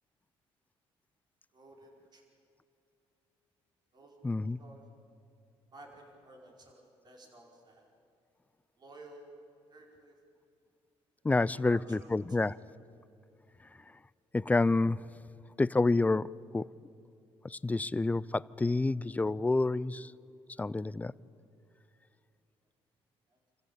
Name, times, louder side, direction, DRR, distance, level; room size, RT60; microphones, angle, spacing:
voice 1, 1.5-2.2 3.9-4.8 5.7-7.9 8.8-9.3 9.7-10.1 11.5-12.1 12.4-12.5, right 2 dB, 40° right, 5.0 m, -54 dB
voice 2, 4.2-4.6 11.2-12.6 14.3-15.0 15.6-16.7 17.4-20.1 20.6-21.1, left 3 dB, 15° left, 0.4 m, -28 dB
27.5 x 15.0 x 8.7 m
cardioid pair, 100°, 10 cm